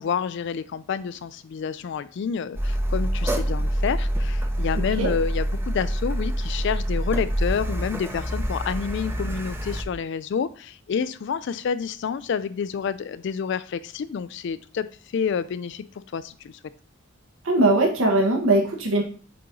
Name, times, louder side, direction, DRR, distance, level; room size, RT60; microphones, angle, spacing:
voice 1, 0.0-14.9 15.1-15.8 16.1-16.6, left 6 dB, 60° left, 14 dB, 0.3 m, -29 dB
Car, 2.5-9.8, equal, 10° right, 0.6 m, -26 dB
voice 2, 4.8-5.1 17.4-19.0, right 2 dB, 90° right, 1 dB, 1.4 m, -20 dB
8.4 x 2.9 x 3.8 m, 0.40 s
head